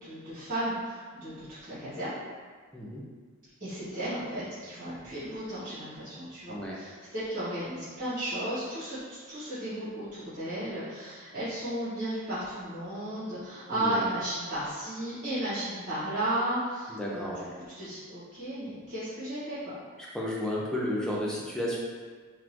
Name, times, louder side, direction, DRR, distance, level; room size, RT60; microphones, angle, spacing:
voice 1, 0.0-2.2 3.6-17.5 17.8-19.7, right 1 dB, 40° right, -14 dB, 1.5 m, -34 dB
voice 2, 13.7-14.1 16.9-17.6 20.1-21.8, left 1 dB, 5° left, -5 dB, 0.5 m, -32 dB
3.7 x 2.6 x 2.9 m, 1.5 s
head